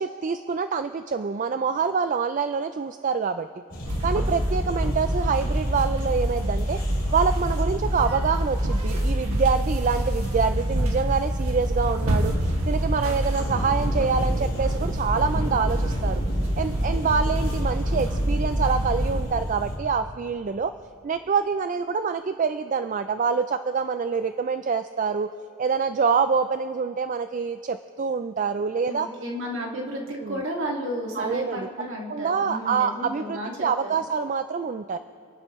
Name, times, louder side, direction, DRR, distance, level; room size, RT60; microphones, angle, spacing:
voice 1, 0.0-3.5 4.0-6.8 7.1-12.3 12.7-16.2 16.6-20.7 21.0-25.3 25.6-29.1 30.2-30.4 31.2-31.7 32.1-35.0, right 5 dB, 35° right, 10 dB, 0.3 m, -26 dB
sound 1, 3.7-19.8, equal, 40° left, 3.1 m, -35 dB
sound 2, 3.8-19.2, equal, 85° right, 1.7 m, -26 dB
voice 2, 28.9-34.0, equal, 60° right, -1 dB, 2.1 m, -33 dB
27.5 x 11.0 x 3.1 m, 2.5 s
head